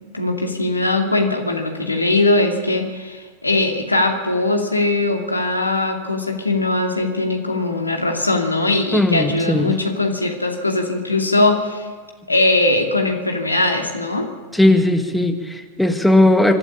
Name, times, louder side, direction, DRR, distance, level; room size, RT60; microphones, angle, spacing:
voice 1, 0.1-11.9 12.3-14.3, left 2 dB, 85° left, 2 dB, 2.5 m, -20 dB
voice 2, 8.9-9.7 14.5-16.6, left 1 dB, ahead, 5 dB, 1.8 m, -17 dB
25.0 x 12.0 x 8.7 m, 1.5 s
figure-of-eight pair, 90°, 0 cm